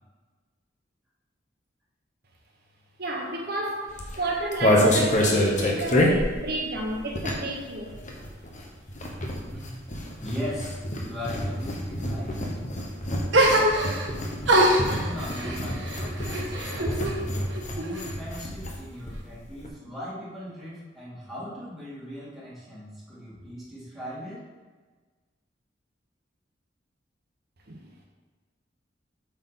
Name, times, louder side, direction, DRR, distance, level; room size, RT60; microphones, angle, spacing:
voice 1, 3.0-7.9 27.7-27.9, right 2 dB, 60° right, 0 dB, 1.0 m, -31 dB
sound 1, 3.9-7.6 7.9-18.8 19.1-19.2 19.4-19.7, left 1 dB, 45° left, 1.2 m, -27 dB
voice 2, 10.2-12.4 14.9-24.5, equal, ahead, -9 dB, 2.4 m, -39 dB
sound 2, 13.3-14.1 14.4-17.2 17.5-18.3, right 1 dB, 80° right, 1.3 m, -24 dB
8.1 x 5.8 x 4.2 m, 1.3 s
head